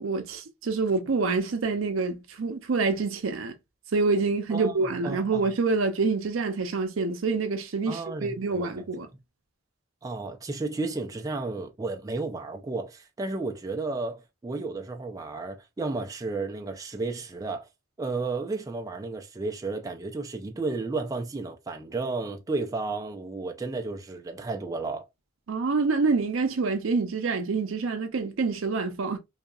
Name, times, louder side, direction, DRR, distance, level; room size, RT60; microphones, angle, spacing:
voice 1, 0.0-3.5 3.9-9.1 25.5-29.2, right 4 dB, 80° right, 0.5 m, -27 dB
voice 2, 4.5-5.5 7.9-8.9 10.0-17.7 18.0-25.0, right 3 dB, 20° right, 0.3 m, -33 dB
2.8 x 2.3 x 2.2 m
head